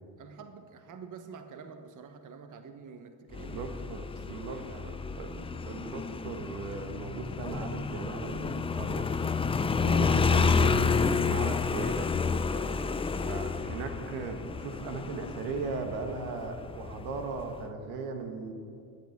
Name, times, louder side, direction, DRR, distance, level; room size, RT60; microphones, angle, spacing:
voice 1, 0.2-3.7 4.2-4.9 9.8-10.1 11.1-11.6 12.5-12.9, right 6 dB, 40° right, 8 dB, 1.1 m, -47 dB
Motorcycle, 3.3-17.6, left 5 dB, 15° left, 0.4 m, -30 dB
voice 2, 3.5-9.1 9.8-12.1 13.2-18.5, right 4 dB, 80° right, 6 dB, 1.5 m, -38 dB
12.0 x 8.2 x 7.1 m, 2.4 s
hypercardioid pair, 70°, 47 cm